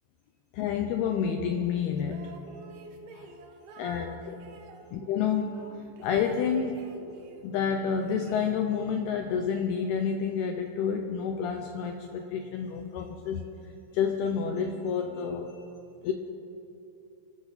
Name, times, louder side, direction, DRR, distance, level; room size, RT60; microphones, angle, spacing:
voice 1, 0.5-2.3 3.1-3.3 3.8-4.5 4.9-7.0 7.4-13.5 13.9-15.6 16.0-16.1, left 7 dB, 85° left, 4 dB, 2.2 m, -29 dB
sound 1, 2.0-4.9 5.5-7.5 7.8-8.9, right 4 dB, 70° right, 2.4 m, -48 dB
25.0 x 12.5 x 4.1 m, 2.7 s
omnidirectional pair, 5.4 m